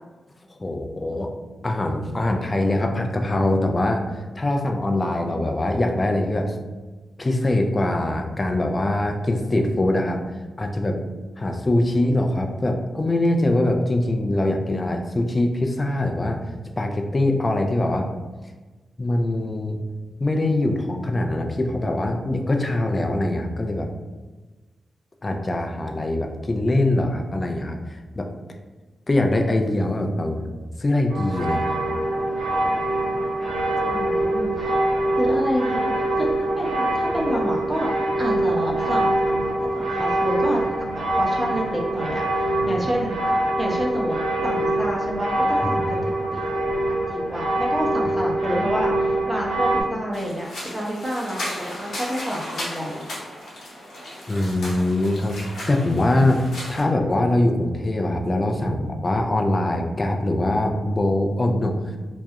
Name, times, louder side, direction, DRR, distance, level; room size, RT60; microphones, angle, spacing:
voice 1, 0.5-1.3 1.6-4.1 4.3-6.6 7.2-10.2 10.6-11.0 11.4-16.4 16.8-18.1 19.0-19.8 20.2-23.9 25.2-28.3 29.1-30.5 30.8-31.8 42.6-42.7 45.8-46.1 54.3-55.4 55.7-61.8, left 1 dB, 30° left, 3 dB, 0.3 m, -23 dB
sound 1, 31.1-49.8, right 1 dB, 85° right, 0.7 m, -24 dB
voice 2, 33.9-34.7 35.2-37.9 38.2-43.1 43.6-44.1 44.4-46.6 47.1-53.0, equal, 10° right, -3 dB, 0.6 m, -28 dB
sound 2, 50.1-56.8, left 1 dB, 80° left, 0.8 m, -35 dB
2.3 x 2.0 x 2.7 m, 1.3 s
cardioid pair, 55°, 0 cm